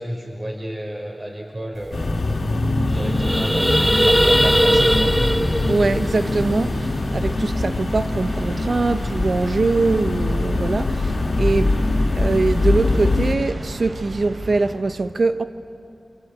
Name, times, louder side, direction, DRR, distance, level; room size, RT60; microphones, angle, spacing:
voice 1, 0.0-2.2 2.9-5.1 11.4-11.5, equal, 35° right, 5.5 m, -31 dB
sound 1, 1.9-13.4, left 2 dB, 80° left, 2.1 m, -23 dB
sound 2, 1.9-2.0 2.2-2.4 2.8-7.1, equal, 5° right, 0.7 m, -20 dB
sound 3, 3.7-14.7, right 1 dB, 85° right, 3.7 m, -34 dB
voice 2, 5.7-11.7 12.1-15.4, right 3 dB, 70° right, 0.9 m, -22 dB
28.0 x 24.5 x 8.5 m
wide cardioid pair, 85°, 0 cm